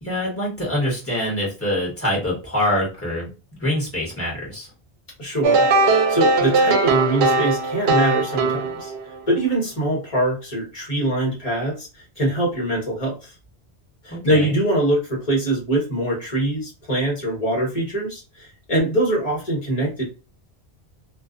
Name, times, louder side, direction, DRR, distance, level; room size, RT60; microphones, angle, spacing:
voice 1, 0.0-3.3 3.6-4.7 14.1-14.5, left 1 dB, 15° left, -6 dB, 1.3 m, -25 dB
voice 2, 5.2-8.9 9.3-11.9 12.2-13.3 14.0-20.0, right 1 dB, 35° left, -2 dB, 1.3 m, -23 dB
sound 1, 5.4-9.3, right 3 dB, 75° right, 0.8 m, -19 dB
2.4 x 2.4 x 2.4 m, 0.31 s
omnidirectional pair, 1.1 m